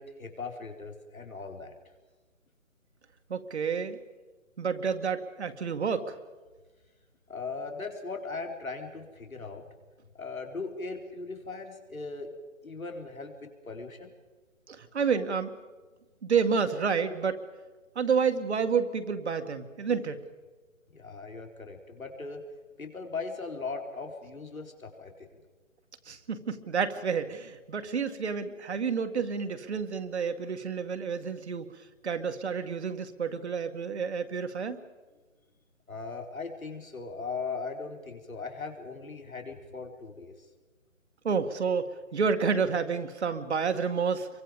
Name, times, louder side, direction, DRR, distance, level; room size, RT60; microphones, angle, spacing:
voice 1, 0.0-1.7 7.3-9.6 10.2-12.3 12.6-14.1 20.9-22.4 22.8-25.3 35.9-40.3, left 4 dB, 90° left, 3 dB, 4.8 m, -39 dB
voice 2, 3.3-4.0 4.6-6.2 14.7-15.5 16.2-17.4 18.0-20.2 26.1-31.8 32.0-34.8 41.2-44.3, right 6 dB, 55° right, 8 dB, 2.1 m, -29 dB
28.5 x 24.0 x 5.3 m, 1.3 s
hypercardioid pair, 160°, 40 cm